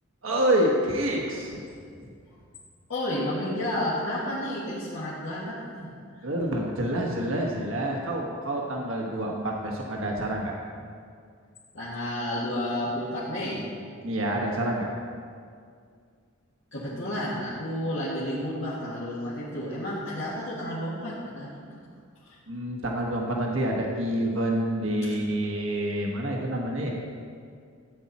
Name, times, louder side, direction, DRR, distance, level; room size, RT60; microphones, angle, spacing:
voice 1, 0.2-1.6 6.2-10.5 14.0-14.9 22.5-26.9, right 1 dB, 80° right, -1 dB, 1.3 m, -27 dB
voice 2, 2.9-5.9 6.2-6.3 11.7-13.7 16.7-21.5 22.2-22.4, left 1 dB, 65° left, -10 dB, 2.1 m, -31 dB
13.5 x 8.6 x 4.2 m, 2.2 s
head